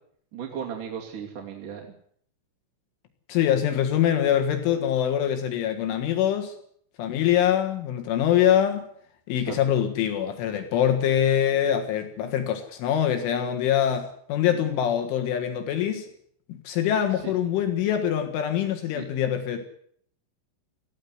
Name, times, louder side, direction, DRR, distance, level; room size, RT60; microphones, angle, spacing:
voice 1, 0.3-1.9 9.5-9.6 17.2-17.3 18.9-19.1, right 8 dB, 50° right, -1 dB, 3.6 m, -35 dB
voice 2, 3.3-6.6 7.0-8.8 9.3-16.1 16.5-19.7, left 10 dB, 80° left, 6 dB, 4.2 m, -24 dB
18.5 x 15.5 x 9.7 m, 0.65 s
omnidirectional pair, 5.6 m